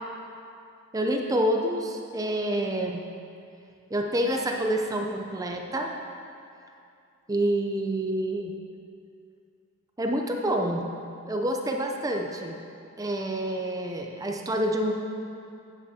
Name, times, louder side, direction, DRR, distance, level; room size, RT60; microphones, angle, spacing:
voice 1, 0.9-3.1 3.9-5.9 7.3-8.5 10.0-10.9 11.3-12.6 13.0-14.9, right 1 dB, 15° right, 2 dB, 0.5 m, -27 dB
11.0 x 8.4 x 2.8 m, 2.5 s
head